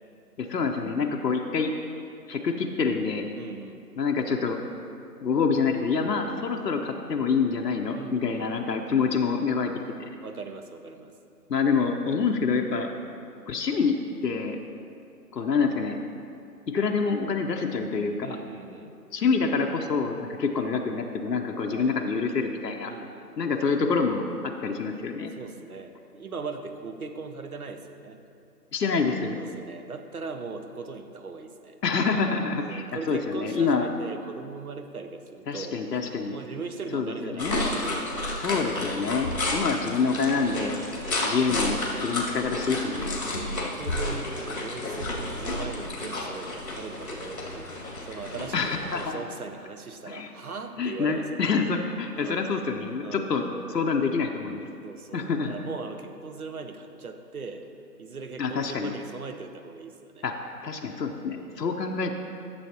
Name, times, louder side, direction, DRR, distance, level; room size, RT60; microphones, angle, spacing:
voice 1, 0.4-1.7 2.3-3.3 4.0-4.6 5.2-9.7 11.5-12.9 13.5-14.6 15.3-16.0 16.7-18.4 19.1-22.9 23.4-25.3 28.7-29.4 31.8-33.9 35.5-36.4 36.9-37.7 38.4-40.8 41.2-43.2 48.5-49.2 50.1-50.3 50.8-53.4 53.7-54.6 55.1-55.5 58.4-58.9 60.2-62.1, left 5 dB, 80° left, 2 dB, 0.8 m, -27 dB
voice 2, 3.3-3.8 7.9-8.9 10.2-11.1 18.2-18.9 21.7-22.1 22.8-23.5 25.4-28.2 29.3-31.8 32.6-38.4 39.3-40.0 41.4-41.5 41.9-42.1 43.2-51.3 52.1-52.5 53.0-53.4 54.8-57.7 58.0-60.2 61.3-61.7, right 4 dB, 60° right, 7 dB, 0.8 m, -39 dB
sound 1, 37.4-49.1, left 2 dB, 60° left, 2.0 m, -31 dB
13.0 x 7.0 x 2.8 m, 2.5 s
figure-of-eight pair, 180°, 49 cm